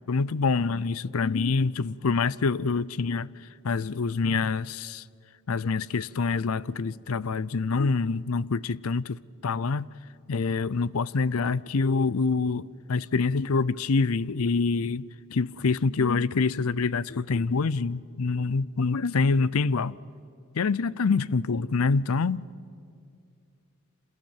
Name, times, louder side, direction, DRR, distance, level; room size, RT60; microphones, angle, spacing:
voice 1, 0.1-3.3 3.6-5.0 5.5-9.9 10.3-20.0 20.5-22.5, left 4 dB, 90° left, 0.6 m, -26 dB
28.0 x 27.0 x 7.4 m
head